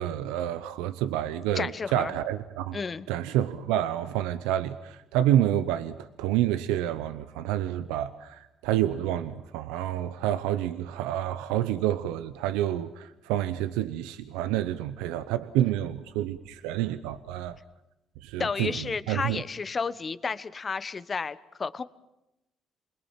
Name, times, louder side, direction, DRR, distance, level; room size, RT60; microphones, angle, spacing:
voice 1, 0.0-2.8 3.1-17.6 18.2-19.4, right 12 dB, 90° right, 0.8 m, -28 dB
voice 2, 1.5-2.1 2.7-3.1 18.4-21.8, left 5 dB, 35° left, 1.1 m, -32 dB
28.5 x 21.0 x 7.4 m
supercardioid pair, 70°, 0 cm